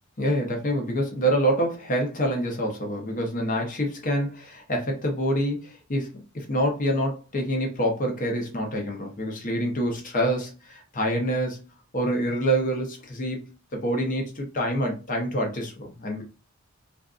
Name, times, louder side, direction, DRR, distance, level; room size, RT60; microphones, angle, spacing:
voice 1, 0.2-11.6 11.9-16.2, equal, 40° left, 0.8 m, -26 dB
2.5 x 2.4 x 2.4 m
head